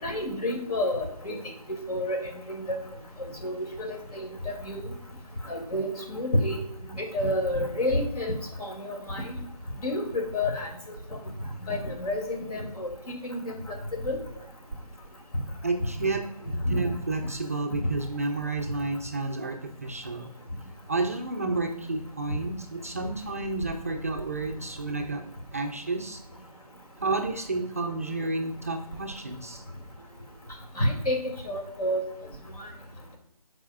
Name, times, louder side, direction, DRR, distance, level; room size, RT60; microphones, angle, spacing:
voice 1, 0.0-1.4 1.7-2.2 2.5-2.6 3.4-4.8 5.5-6.6 7.0-8.3 8.6-9.4 9.8-10.7 11.7-12.9 13.2-13.8 14.0-14.2 16.7-16.8 30.8-31.2 31.5-32.0, left 1 dB, 70° left, 1 dB, 2.7 m, -29 dB
voice 2, 15.6-16.3 16.7-20.3 20.9-26.2 27.0-29.6, right 3 dB, 25° right, 2 dB, 0.4 m, -31 dB
14.0 x 4.8 x 2.5 m, 0.75 s
figure-of-eight pair, 165°, 20 cm